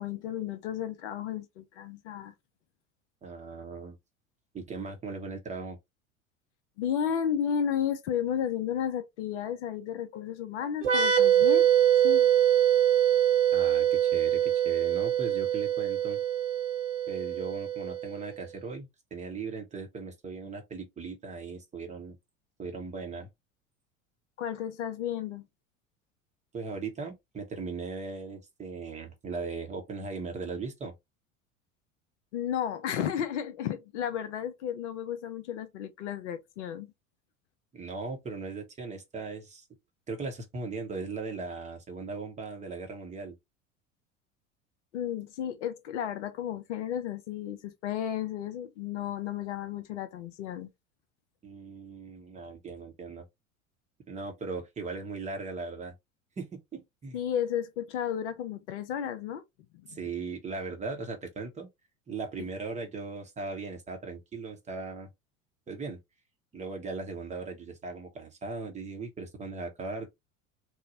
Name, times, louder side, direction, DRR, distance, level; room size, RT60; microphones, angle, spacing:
voice 1, 0.0-2.3 6.8-11.7 12.0-12.3 24.4-25.5 32.3-36.9 44.9-50.7 57.1-59.4 59.7-60.0, left 9 dB, 55° left, 0.6 m, -33 dB
voice 2, 3.2-4.0 4.5-5.8 13.5-16.2 17.1-22.2 22.6-23.3 26.5-30.9 37.7-39.6 40.1-43.3 51.4-53.3 54.1-55.9 56.4-57.2 59.9-61.7 62.1-65.1 65.7-66.0 66.5-70.1, right 4 dB, 15° right, 0.8 m, -38 dB
sound 1, 10.8-18.3, right 10 dB, 55° right, 0.9 m, -24 dB
3.1 x 2.0 x 2.6 m
figure-of-eight pair, 75°, 41 cm